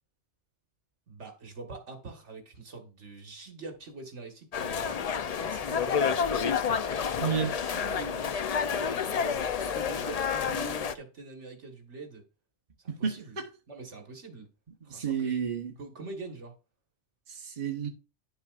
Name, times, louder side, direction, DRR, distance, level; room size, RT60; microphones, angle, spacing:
voice 1, 1.1-6.2 7.1-12.3 12.8-13.4 13.7-14.5 14.8-15.3 15.8-16.5, right 3 dB, 70° right, 1.8 m, -44 dB
sound 1, 4.5-10.9, left 6 dB, 65° left, 0.4 m, -29 dB
voice 2, 12.9-13.5 14.9-15.7 17.3-17.9, right 7 dB, 40° right, 1.2 m, -31 dB
10.5 x 7.0 x 2.4 m
omnidirectional pair, 1.3 m